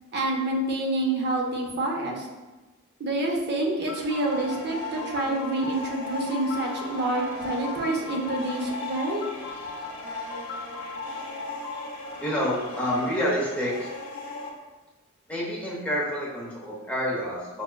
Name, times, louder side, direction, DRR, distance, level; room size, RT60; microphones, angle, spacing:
voice 1, 0.1-2.3 3.0-9.2, right 2 dB, 50° right, -1 dB, 0.6 m, -27 dB
sound 1, 3.8-14.5, left 3 dB, 85° left, 0.6 m, -36 dB
voice 2, 12.2-13.9 15.3-17.6, equal, 5° left, -6 dB, 0.8 m, -28 dB
5.5 x 2.2 x 2.2 m, 1.2 s
head